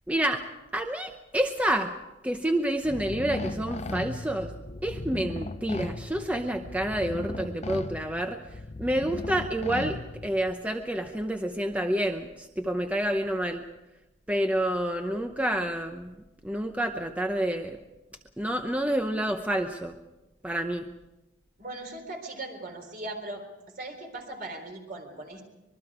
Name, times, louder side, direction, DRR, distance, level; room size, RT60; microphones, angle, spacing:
voice 1, 0.1-0.4 0.7-1.9 2.2-4.5 4.8-10.0 10.2-13.7 14.3-16.2 16.4-17.8 18.4-20.0 20.4-20.9, right 1 dB, 10° right, 5 dB, 0.8 m, -28 dB
sound 1, 2.8-10.5, left 2 dB, 35° left, 0.6 m, -37 dB
voice 2, 21.6-23.5 23.7-25.4, right 2 dB, 50° right, 3 dB, 4.0 m, -39 dB
25.0 x 21.5 x 4.9 m, 0.99 s
head